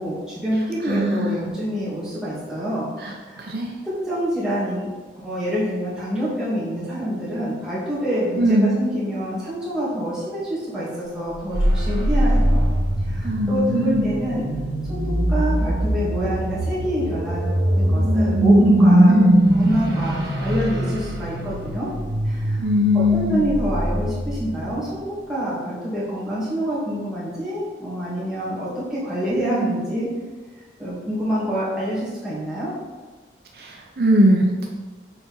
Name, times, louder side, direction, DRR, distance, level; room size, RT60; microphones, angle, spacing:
voice 1, 0.0-2.9 3.3-3.5 3.8-4.9 5.2-12.7 13.0-14.5 14.9-19.2 19.5-21.9 22.2-22.6 22.9-30.1 30.8-32.7, equal, 5° right, -9 dB, 2.5 m, -26 dB
voice 2, 0.8-1.4 3.0-3.7 8.4-8.8 13.2-14.1 19.1-19.4 22.6-23.5 29.3-29.8 33.5-34.7, equal, 60° right, 0 dB, 0.8 m, -21 dB
sound 1, 11.3-24.8, right 1 dB, 90° right, 1.4 m, -21 dB
7.0 x 4.5 x 5.5 m, 1.4 s
head